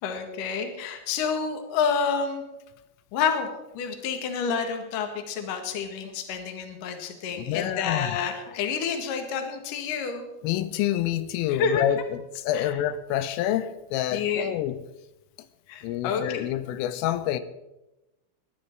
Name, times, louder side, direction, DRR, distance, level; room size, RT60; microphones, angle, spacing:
voice 1, 0.0-2.4 3.1-3.5 3.7-10.3 11.5-11.9 12.5-12.7 14.1-14.5 15.7-16.4, left 6 dB, 60° left, 2.6 m, -29 dB
voice 2, 7.4-8.2 10.4-14.8 15.8-17.4, left 11 dB, 90° left, 3.4 m, -27 dB
22.5 x 11.0 x 4.5 m
omnidirectional pair, 5.7 m